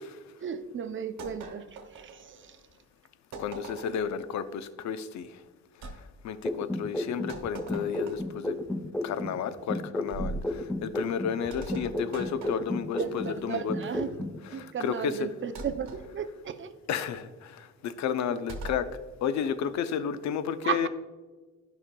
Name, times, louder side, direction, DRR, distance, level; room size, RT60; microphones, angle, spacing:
voice 1, 0.4-2.6 11.7-11.8 13.0-16.7 18.3-18.4 20.6-20.9, right 7 dB, 40° right, 10 dB, 0.6 m, -35 dB
sound 1, 1.2-2.6 3.3-4.2 5.8-6.0 7.3-8.4 10.1-10.5 11.5-13.6 15.6-16.1 18.5-18.9, right 3 dB, 70° right, 1.4 m, -41 dB
voice 2, 3.4-5.3 6.2-8.6 9.0-13.7 14.5-15.1 16.9-18.9 19.2-20.9, left 7 dB, 65° left, 12 dB, 0.6 m, -32 dB
sound 2, 6.4-9.4 9.7-13.4 13.7-14.4, left 1 dB, 5° left, 0.3 m, -33 dB
11.0 x 5.7 x 2.2 m, 1.3 s
cardioid pair, 90°, 30 cm